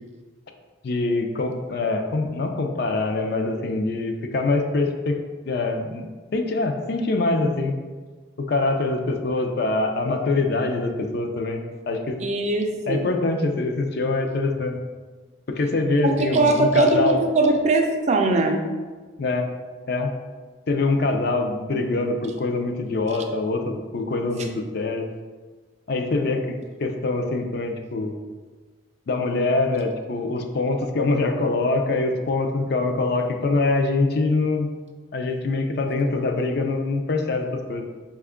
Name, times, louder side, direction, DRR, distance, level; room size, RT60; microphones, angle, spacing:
voice 1, 0.8-5.2 5.4-6.0 6.3-7.7 8.5-12.2 12.9-14.8 15.6-17.2 19.2-19.5 19.9-20.1 20.7-25.1 25.9-28.2 29.1-34.7 35.1-37.8, left 3 dB, 50° left, 4 dB, 0.4 m, -24 dB
voice 2, 12.2-13.1 16.0-18.6, right 2 dB, 35° right, 3 dB, 0.4 m, -21 dB
5.0 x 2.3 x 3.6 m, 1.4 s
head